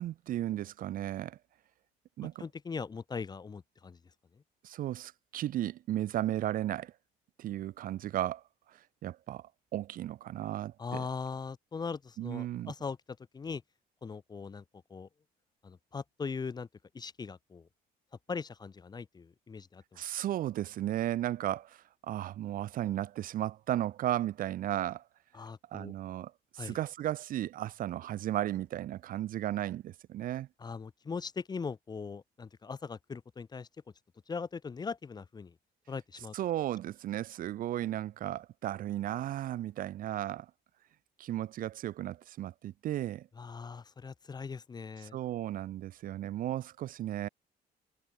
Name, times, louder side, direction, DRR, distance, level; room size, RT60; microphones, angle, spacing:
voice 1, 0.0-1.4 2.2-2.4 4.6-6.9 7.4-8.4 8.7-11.0 12.2-12.7 20.0-25.0 25.7-30.5 36.3-40.5 41.2-43.3 45.0-47.3, right 13 dB, 55° right, 0.5 m, -35 dB
voice 2, 2.4-4.0 10.8-13.0 13.3-13.6 14.0-14.6 14.9-15.1 15.6-16.7 16.9-17.7 18.3-20.0 25.3-25.9 26.6-26.8 30.6-33.7 34.3-35.5 35.9-36.3 43.4-45.2, left 5 dB, 25° left, 0.8 m, -40 dB
cardioid pair, 110°, 17 cm